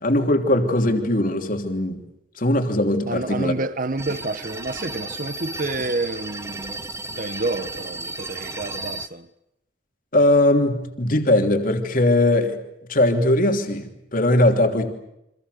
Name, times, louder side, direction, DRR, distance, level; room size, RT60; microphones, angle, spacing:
voice 1, 0.0-2.0 2.4-3.5 10.1-12.6 12.9-14.9, left 1 dB, 50° left, 3.2 m, -20 dB
voice 2, 3.1-9.3, right 2 dB, 50° right, 1.3 m, -29 dB
sound 1, 4.0-9.1, right 2 dB, 15° right, 1.1 m, -34 dB
29.5 x 25.5 x 6.8 m
head